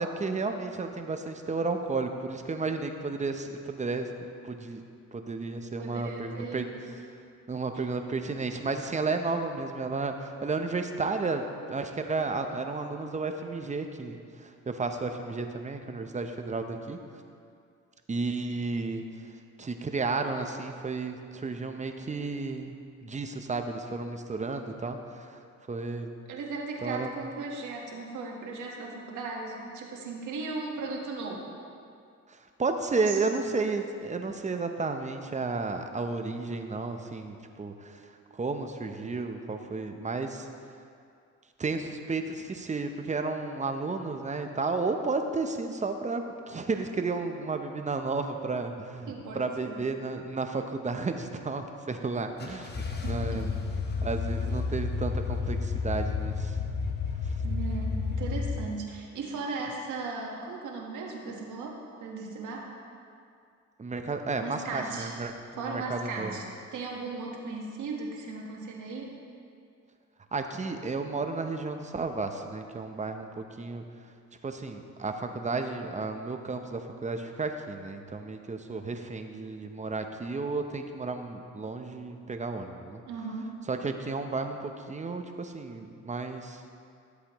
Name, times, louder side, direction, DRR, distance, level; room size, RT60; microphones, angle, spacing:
voice 1, 0.0-4.8 5.1-6.7 7.5-17.0 18.1-19.0 19.6-22.8 23.0-25.4 25.7-26.1 26.8-27.1 32.3-38.0 38.3-40.5 41.6-53.5 54.0-56.6 57.2-57.3 63.8-66.4 70.3-73.8 74.4-83.0 83.7-86.6, right 3 dB, 25° right, 6 dB, 0.7 m, -32 dB
voice 2, 5.8-6.8 26.3-31.4 33.1-33.4 49.1-49.8 53.0-53.5 57.4-62.7 64.4-65.1 65.6-66.4 66.7-69.1 83.1-83.6, right 3 dB, 75° right, -1 dB, 1.5 m, -37 dB
sound 1, 52.4-58.6, left 4 dB, 35° left, 1.0 m, -31 dB
13.0 x 8.1 x 3.0 m, 2.4 s
cardioid pair, 90°, 30 cm